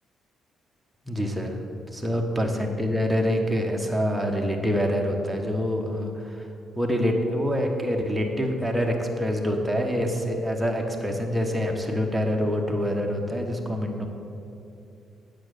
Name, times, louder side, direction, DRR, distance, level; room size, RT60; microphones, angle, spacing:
voice 1, 1.1-1.6 1.9-6.5 6.8-14.1, equal, 5° right, 1 dB, 1.3 m, -26 dB
8.8 x 6.3 x 6.6 m, 2.7 s
cardioid pair, 90°, 0 cm